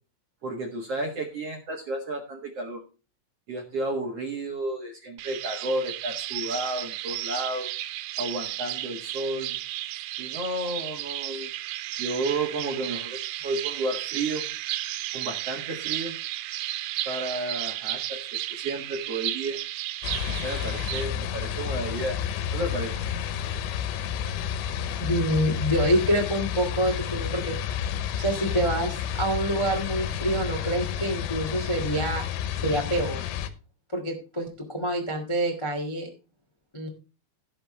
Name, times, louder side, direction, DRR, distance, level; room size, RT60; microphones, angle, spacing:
voice 1, 0.4-2.8 3.5-7.7 8.2-9.6 10.2-11.5 12.0-14.4 15.1-16.2 17.0-18.2 18.5-19.6 20.3-22.2 22.5-23.0, right 2 dB, 60° right, 2 dB, 1.7 m, -32 dB
sound 1, 5.2-21.0, right 15 dB, 90° right, 3.1 m, -33 dB
sound 2, 20.0-33.5, left 9 dB, 80° left, 3.2 m, -30 dB
voice 2, 25.0-27.6 28.2-32.2 32.6-33.2 33.9-36.1 36.7-36.9, right 1 dB, 35° left, 2 dB, 0.4 m, -26 dB
17.0 x 6.9 x 3.3 m, 0.33 s
omnidirectional pair, 5.1 m